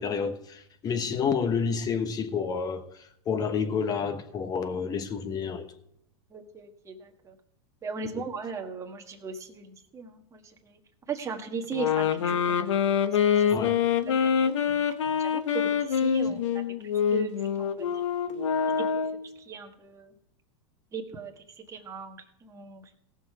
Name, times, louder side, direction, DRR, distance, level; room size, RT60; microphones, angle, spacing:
voice 1, 0.0-2.8 3.3-5.7 13.5-13.7 16.3-16.4, left 6 dB, 25° left, 1.1 m, -29 dB
voice 2, 6.3-7.4 7.8-10.8 11.1-12.6 13.1-13.5 14.1-16.6 17.1-18.0 18.8-20.1 20.9-22.9, right 5 dB, 20° right, 1.5 m, -39 dB
sound 1, 11.7-19.3, left 7 dB, 90° left, 0.9 m, -25 dB
17.0 x 6.5 x 4.8 m
supercardioid pair, 130°, 15 cm